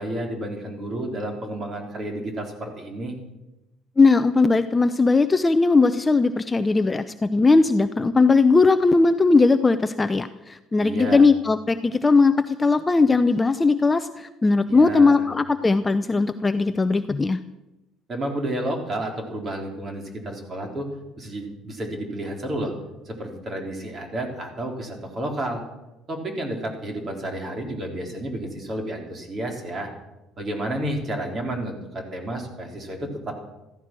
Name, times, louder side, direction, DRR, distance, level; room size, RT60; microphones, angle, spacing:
voice 1, 0.0-3.2 10.8-11.3 14.7-15.2 18.1-20.9 21.2-22.7 23.1-25.6 26.1-29.9 30.4-33.4, right 1 dB, 30° right, 2 dB, 3.9 m, -31 dB
voice 2, 4.0-17.4, left 3 dB, 15° left, 10 dB, 0.6 m, -19 dB
15.0 x 14.5 x 6.2 m, 0.97 s
cardioid pair, 130°, 0 cm